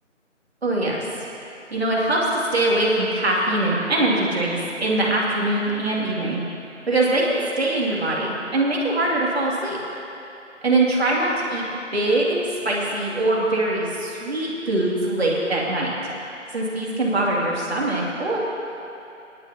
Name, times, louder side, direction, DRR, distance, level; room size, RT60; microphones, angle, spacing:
voice 1, 0.6-1.1 1.7-6.4 6.9-9.8 10.6-11.7 11.9-15.9 16.5-18.4, right 2 dB, 55° right, -4 dB, 2.7 m, -22 dB
20.5 x 11.0 x 2.9 m, 2.8 s
figure-of-eight pair, 170°, 38 cm